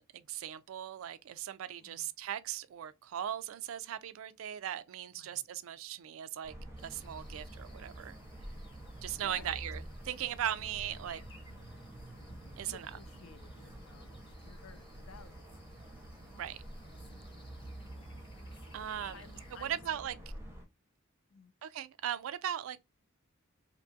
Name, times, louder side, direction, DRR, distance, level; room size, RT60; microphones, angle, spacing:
voice 1, 0.0-6.5 6.8-8.2 9.0-11.2 12.6-12.9 16.4-16.6 18.7-19.2 19.6-20.1 21.6-22.8, right 10 dB, 75° right, 0.3 m, -38 dB
voice 2, 5.1-5.5 9.2-9.6 11.5-11.9 12.6-15.6 19.1-20.3 21.3-21.5, left 6 dB, 70° left, 0.5 m, -56 dB
sound 1, 6.4-20.7, right 1 dB, 15° right, 0.6 m, -48 dB
sound 2, 6.8-19.8, equal, 25° left, 0.9 m, -57 dB
2.8 x 2.3 x 2.6 m
head